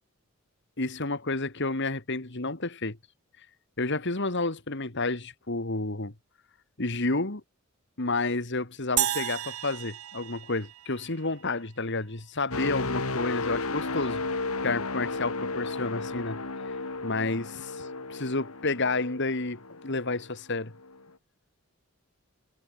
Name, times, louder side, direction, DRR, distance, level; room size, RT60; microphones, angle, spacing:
voice 1, 0.8-3.0 3.8-6.1 6.8-7.4 8.0-14.2 14.6-16.4 17.0-20.7, left 3 dB, 55° left, 2.3 m, -30 dB
sound 1, 9.0-11.4, right 13 dB, 85° right, 0.6 m, -32 dB
sound 2, 12.5-20.3 20.8-21.0, left 3 dB, 85° left, 2.8 m, -34 dB
head